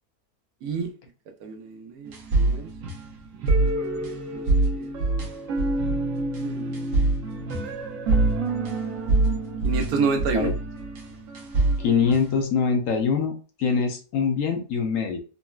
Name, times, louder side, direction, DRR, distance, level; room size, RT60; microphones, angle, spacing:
voice 1, 0.6-0.9 1.4-2.7 4.3-4.4 4.7-5.0 6.4-6.9 9.6-10.5, right 4 dB, 90° right, 1.1 m, -29 dB
sound 1, 2.1-12.4, right 2 dB, 70° right, 1.0 m, -25 dB
voice 2, 11.8-13.3 13.6-15.2, left 5 dB, 65° left, 1.0 m, -23 dB
3.9 x 2.0 x 2.2 m
omnidirectional pair, 1.5 m